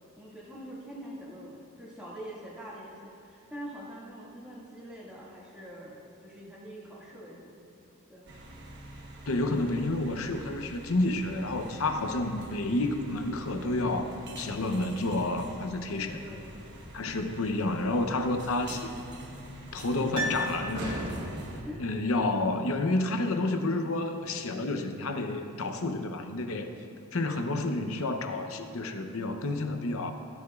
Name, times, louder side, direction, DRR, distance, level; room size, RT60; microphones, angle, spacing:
voice 1, 0.2-7.6 8.1-8.3 11.9-12.0 16.2-16.5 21.6-21.9, equal, 5° right, -9 dB, 2.0 m, -44 dB
sound 1, 8.3-21.6, right 1 dB, 50° right, 1.1 m, -44 dB
voice 2, 9.3-16.2 16.9-18.9 19.7-21.0 21.8-26.7 27.1-30.1, left 2 dB, 70° left, 6 dB, 0.8 m, -30 dB
Piano, 20.1-21.4 21.7-21.8, equal, 20° right, 1.7 m, -35 dB
17.0 x 9.7 x 2.4 m, 2.6 s
head